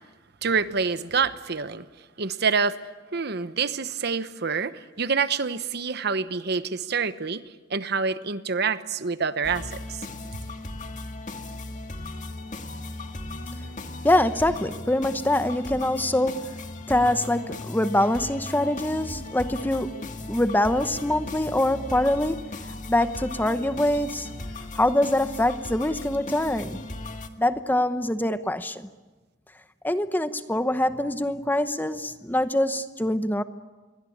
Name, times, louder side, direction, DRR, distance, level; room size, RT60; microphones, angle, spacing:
voice 1, 0.4-1.8 2.2-2.8 3.1-7.4 7.7-10.0, right 5 dB, 60° right, 1.1 m, -27 dB
sound 1, 9.4-27.3, left 2 dB, 45° left, 2.0 m, -37 dB
voice 2, 14.0-16.6 16.9-24.3 24.7-26.8 27.4-28.9 29.8-33.4, left 1 dB, 10° left, 0.9 m, -24 dB
28.0 x 23.0 x 8.7 m
head